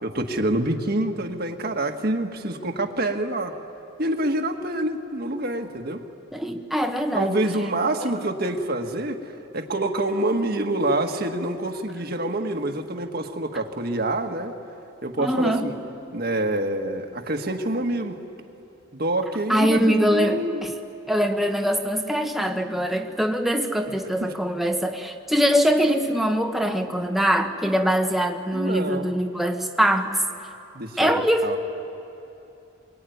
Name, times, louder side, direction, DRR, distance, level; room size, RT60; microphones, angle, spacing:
voice 1, 0.0-3.5 4.0-6.1 7.1-9.2 9.5-14.5 15.0-15.7 16.1-18.2 18.9-20.6 24.2-24.3 28.5-29.1 30.7-31.6, right 1 dB, 50° right, 5 dB, 1.7 m, -26 dB
voice 2, 6.3-7.4 15.2-15.7 19.5-20.7 21.1-30.2 31.0-31.6, equal, ahead, 4 dB, 1.2 m, -23 dB
23.5 x 23.0 x 9.5 m, 2.9 s
head